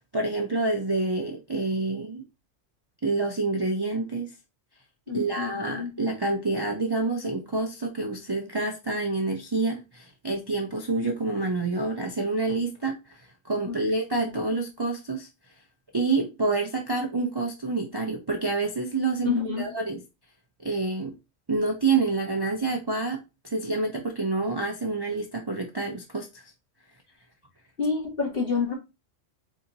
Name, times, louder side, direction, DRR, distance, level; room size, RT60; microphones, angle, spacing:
voice 1, 0.0-2.2 3.0-4.3 5.1-15.3 15.9-20.0 20.6-21.1 21.5-26.4, right 3 dB, 30° right, 0.5 m, -28 dB
voice 2, 5.1-6.0 13.7-13.8 14.2-14.3 19.2-19.7 27.8-28.7, left 5 dB, 50° left, 1.9 m, -28 dB
4.2 x 2.7 x 4.0 m
omnidirectional pair, 1.3 m